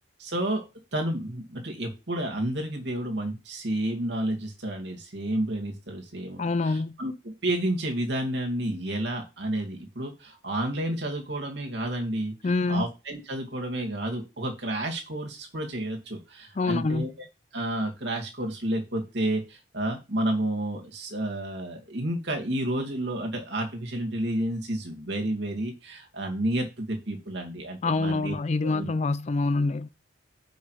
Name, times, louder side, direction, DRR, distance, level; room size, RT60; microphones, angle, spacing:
voice 1, 0.2-0.6 0.9-12.3 12.7-17.1 17.5-28.4 28.6-28.9, right 1 dB, 60° right, 2.2 m, -30 dB
voice 2, 6.4-7.0 12.4-12.9 16.6-17.1 27.8-29.9, left 3 dB, 35° left, 0.4 m, -26 dB
7.5 x 5.2 x 4.8 m
head